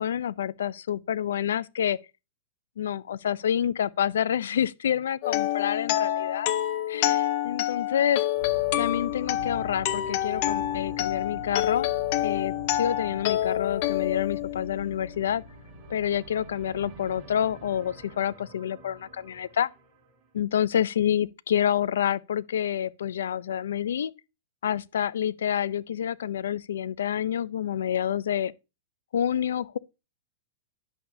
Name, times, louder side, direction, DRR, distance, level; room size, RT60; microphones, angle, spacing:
voice 1, 0.0-2.0 2.8-6.5 6.9-8.2 8.8-11.9 12.2-15.4 15.9-19.7 20.3-24.1 24.6-28.5 29.1-29.8, left 9 dB, 85° left, 0.5 m, -28 dB
sound 1, 5.2-15.1, left 13 dB, 50° left, 0.9 m, -28 dB
sound 2, 8.3-20.3, equal, 30° right, 4.2 m, -45 dB
10.5 x 6.8 x 2.7 m
hypercardioid pair, 130°, 0 cm